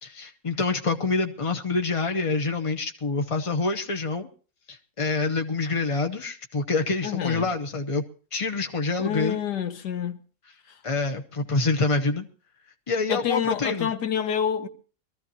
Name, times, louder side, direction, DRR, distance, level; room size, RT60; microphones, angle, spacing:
voice 1, 0.0-4.3 4.7-8.0 8.3-9.4 10.8-12.3 12.9-13.9, left 3 dB, 35° left, 0.5 m, -26 dB
voice 2, 7.0-7.5 9.0-10.2 13.1-14.7, left 8 dB, 75° left, 1.7 m, -27 dB
23.0 x 14.0 x 2.8 m
omnidirectional pair, 1.8 m